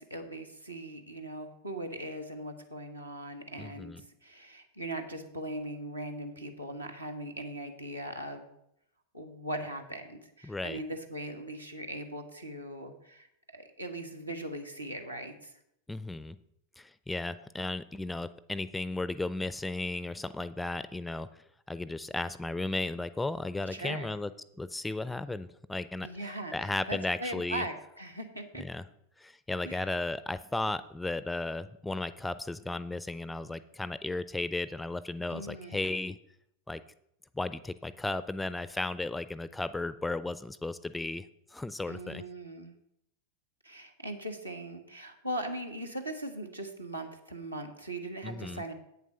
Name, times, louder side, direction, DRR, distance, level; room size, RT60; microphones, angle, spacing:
voice 1, 0.0-8.5 9.1-13.3 13.5-15.5 23.7-24.1 26.0-28.6 29.6-29.9 35.3-35.9 41.9-42.7 43.6-48.7, right 1 dB, 85° right, 4 dB, 1.3 m, -40 dB
voice 2, 3.6-4.0 10.4-10.8 15.9-16.4 16.8-21.3 21.7-24.3 24.6-26.1 26.5-27.7 28.6-28.8 29.2-36.2 36.7-36.8 37.3-41.3 41.5-42.2 48.2-48.6, left 2 dB, 5° left, 15 dB, 0.4 m, -35 dB
8.5 x 7.3 x 5.6 m, 0.77 s
figure-of-eight pair, 90°, 0 cm